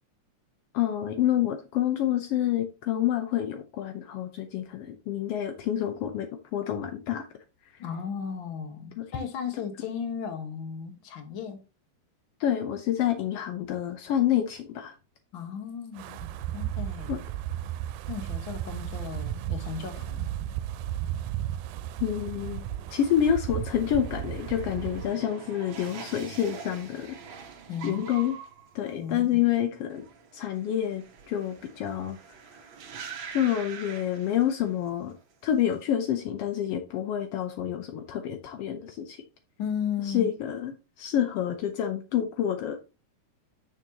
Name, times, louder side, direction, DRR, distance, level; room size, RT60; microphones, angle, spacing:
voice 1, 0.7-7.2 9.0-9.2 12.4-14.9 17.1-17.2 22.0-22.6 22.9-27.2 27.8-28.3 28.7-30.0 30.3-32.2 33.3-35.1 35.4-39.2 40.0-42.8, left 10 dB, 75° left, 1.4 m, -28 dB
voice 2, 7.8-11.6 15.3-17.2 18.1-20.3 27.7-28.0 28.9-29.4 39.6-40.3, left 7 dB, 50° left, 1.6 m, -35 dB
Wind, 16.0-25.1, right 12 dB, 90° right, 2.1 m, -34 dB
sound 1, 21.8-34.9 35.2-35.7, right 6 dB, 55° right, 1.5 m, -45 dB
8.7 x 6.4 x 2.8 m
omnidirectional pair, 3.5 m